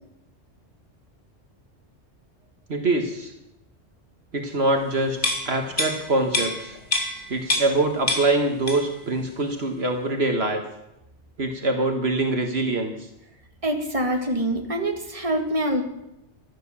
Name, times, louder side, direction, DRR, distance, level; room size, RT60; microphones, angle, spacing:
voice 1, 2.7-3.3 4.3-5.2 5.5-6.8 7.3-10.6 11.4-12.9, right 2 dB, 60° right, 4 dB, 1.8 m, -24 dB
sound 1, 5.2-7.8 8.1-9.0 9.4-9.5, left 2 dB, 45° left, 2.4 m, -27 dB
voice 2, 13.6-15.8, right 1 dB, 30° right, 3 dB, 2.2 m, -25 dB
14.5 x 12.5 x 7.2 m, 0.87 s
omnidirectional pair, 1.2 m